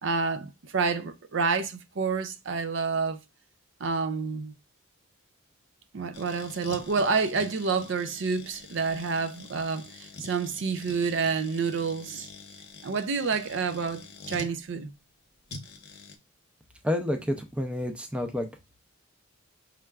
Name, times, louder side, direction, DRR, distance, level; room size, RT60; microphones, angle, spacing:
voice 1, 0.0-3.2 3.8-4.5 5.9-12.3 12.8-14.9, right 5 dB, 60° right, 0.5 m, -28 dB
sound 1, 6.1-14.5 15.5-16.2, left 3 dB, 50° left, 0.9 m, -46 dB
voice 2, 16.8-18.5, left 1 dB, 5° right, 0.5 m, -29 dB
5.6 x 3.3 x 2.3 m
head